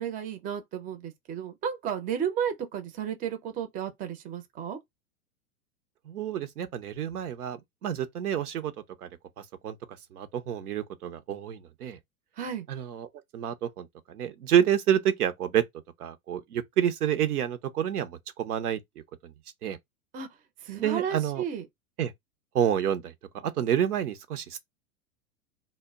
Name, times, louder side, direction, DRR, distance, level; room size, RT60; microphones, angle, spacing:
voice 1, 0.0-4.8 12.4-12.7 20.1-20.3 20.6-21.7, right 8 dB, 20° right, 0.4 m, -33 dB
voice 2, 6.1-8.7 9.0-9.1 9.4-9.8 10.1-12.0 12.7-15.6 16.0-18.8 19.2-19.3 19.6-19.8 20.8-21.4 22.0-22.1 22.5-24.6, right 10 dB, 85° right, 0.6 m, -28 dB
2.0 x 2.0 x 3.4 m
hypercardioid pair, 100°, 44 cm